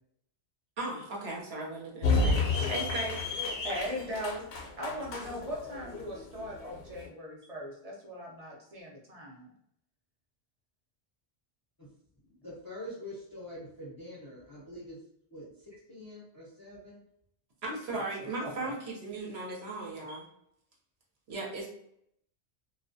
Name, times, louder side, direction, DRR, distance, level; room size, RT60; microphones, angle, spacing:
voice 1, 0.8-3.3 17.6-20.2 21.3-21.7, right 2 dB, 70° right, -2 dB, 0.9 m, -37 dB
sound 1, 2.0-7.1, left 3 dB, 65° left, 0.7 m, -31 dB
voice 2, 3.6-9.5 17.9-18.7 20.1-20.2, equal, 45° right, -2 dB, 0.6 m, -40 dB
voice 3, 12.3-15.0 15.3-17.0, left 1 dB, 30° left, -6 dB, 0.5 m, -45 dB
2.3 x 2.2 x 2.5 m, 0.73 s
omnidirectional pair, 1.1 m